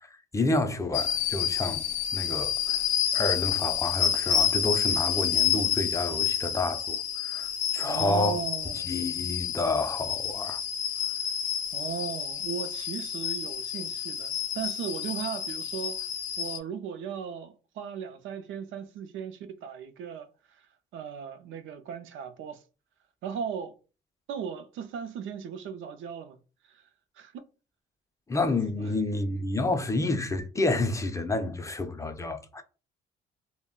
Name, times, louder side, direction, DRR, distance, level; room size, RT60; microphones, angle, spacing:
voice 1, 0.0-1.8 2.1-2.8 3.1-8.4 8.7-10.6 28.3-32.6, left 2 dB, 15° left, 0.4 m, -29 dB
sound 1, 0.9-16.6, left 9 dB, 90° left, 0.4 m, -29 dB
voice 2, 7.8-9.0 11.7-16.1 16.4-20.3 20.9-22.6 23.2-23.8 24.3-26.4 26.7-26.8 27.2-27.3, right 7 dB, 80° right, 0.5 m, -37 dB
2.2 x 2.1 x 3.6 m
cardioid pair, 90°, 20 cm